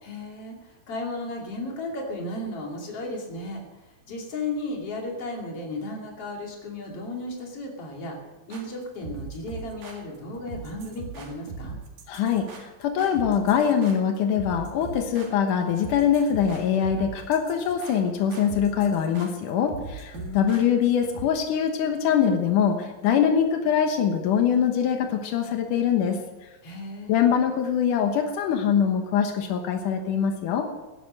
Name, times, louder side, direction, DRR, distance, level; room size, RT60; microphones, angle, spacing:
voice 1, 0.0-3.6 4.1-8.2 8.5-11.8 20.1-20.9 26.6-27.2, left 2 dB, 50° left, 0 dB, 3.6 m, -34 dB
sound 1, 8.5-21.3, right 4 dB, 85° right, 3.6 m, -41 dB
voice 2, 12.1-26.2 27.1-30.7, left 8 dB, 90° left, 5 dB, 2.8 m, -23 dB
17.0 x 11.0 x 6.5 m, 1.1 s
omnidirectional pair, 3.6 m